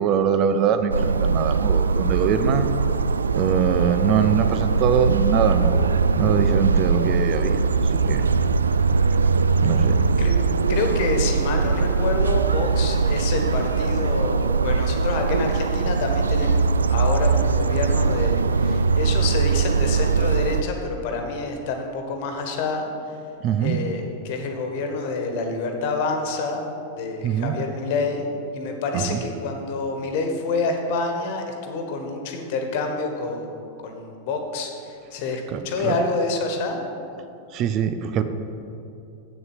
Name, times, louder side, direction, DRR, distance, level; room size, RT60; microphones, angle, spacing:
voice 1, 0.0-2.7 3.3-5.9 6.1-8.3 9.6-10.0 23.4-23.8 27.2-27.6 28.9-29.2 35.5-36.0 37.5-38.2, right 7 dB, 35° right, 10 dB, 0.6 m, -23 dB
sound 1, 0.9-20.6, right 4 dB, 75° right, 0.3 m, -21 dB
voice 2, 10.7-22.9 23.6-26.6 27.0-28.3 28.5-33.5 33.8-36.8, left 3 dB, 50° left, 4 dB, 1.4 m, -27 dB
8.2 x 6.9 x 7.7 m, 2.7 s
figure-of-eight pair, 90°, 0 cm